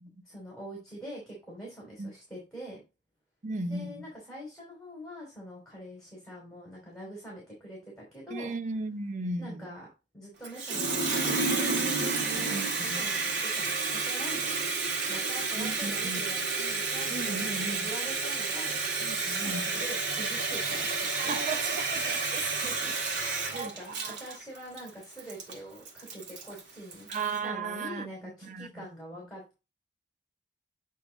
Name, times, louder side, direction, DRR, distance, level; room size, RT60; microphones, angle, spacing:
voice 1, 0.2-2.8 3.7-8.5 9.4-9.9 10.1-14.7 15.1-19.1 19.4-21.3 22.6-27.1 27.4-29.6, equal, 5° left, 3.0 m, -44 dB
voice 2, 3.4-4.0 8.3-9.7 12.5-13.0 15.5-16.2 17.1-17.9 19.0-19.8 21.2-22.5 23.0-23.1 23.5-24.2 27.1-28.1 28.4-28.7, right 3 dB, 40° right, 0.7 m, -36 dB
Water tap faucet, 10.4-27.4, right 3 dB, 65° right, 1.9 m, -31 dB
8.5 x 3.7 x 3.9 m
head